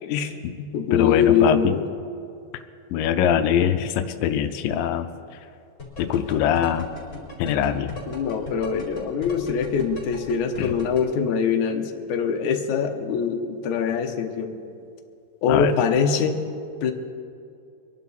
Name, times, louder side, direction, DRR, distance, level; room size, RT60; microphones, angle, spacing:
voice 1, 0.0-1.8 8.1-14.5 15.4-16.4 16.8-16.9, left 6 dB, 70° left, 4 dB, 2.2 m, -23 dB
voice 2, 0.9-1.8 2.5-2.6 2.9-5.1 6.0-6.9 7.4-8.0 10.6-10.8 15.5-15.7, left 9 dB, 85° left, 9 dB, 2.4 m, -23 dB
sound 1, 5.8-11.0, left 3 dB, 25° left, 4.3 m, -36 dB
24.5 x 11.5 x 4.2 m, 2.5 s
omnidirectional pair, 3.9 m